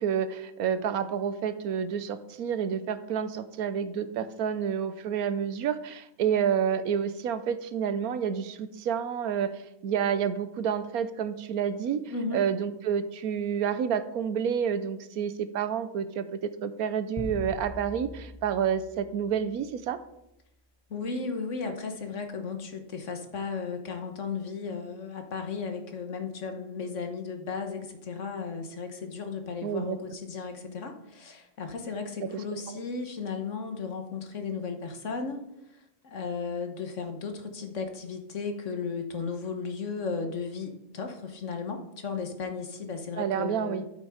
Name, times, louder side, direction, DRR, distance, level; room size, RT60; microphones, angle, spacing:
voice 1, 0.0-12.0 12.3-20.0 29.6-30.0 32.3-32.8 43.1-43.9, right 8 dB, 85° right, 12 dB, 1.2 m, -29 dB
voice 2, 12.1-12.4 20.9-35.4 36.0-43.8, left 5 dB, 55° left, 5 dB, 1.5 m, -35 dB
sound 1, 17.2-19.7, left 1 dB, 25° left, 0.9 m, -41 dB
12.0 x 6.3 x 4.9 m, 0.85 s
omnidirectional pair, 1.5 m